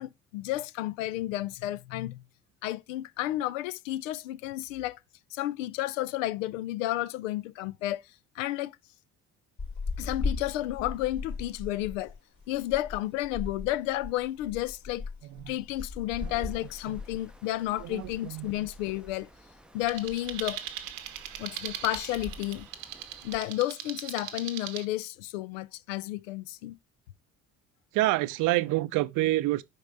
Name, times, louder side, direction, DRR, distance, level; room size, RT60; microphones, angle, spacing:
voice 1, 0.0-2.2 2.6-5.0 5.3-8.0 8.4-8.8 10.0-12.1 12.5-15.0 15.5-19.3 19.7-20.6 21.4-22.7 23.2-26.8, left 15 dB, 80° left, 0.5 m, -32 dB
sound 1, 9.6-18.1 18.4-18.6 19.0-19.8 20.1-20.5 20.8-20.9 21.0-21.5 22.0-22.5, left 4 dB, 50° left, 3.1 m, -38 dB
sound 2, 16.1-23.4, equal, ahead, 0.6 m, -52 dB
voice 2, 17.8-18.5 27.9-29.6, right 17 dB, 55° right, 0.5 m, -28 dB
sound 3, 19.9-24.8, right 11 dB, 85° right, 0.8 m, -40 dB
5.1 x 5.0 x 3.8 m
hypercardioid pair, 55°, 38 cm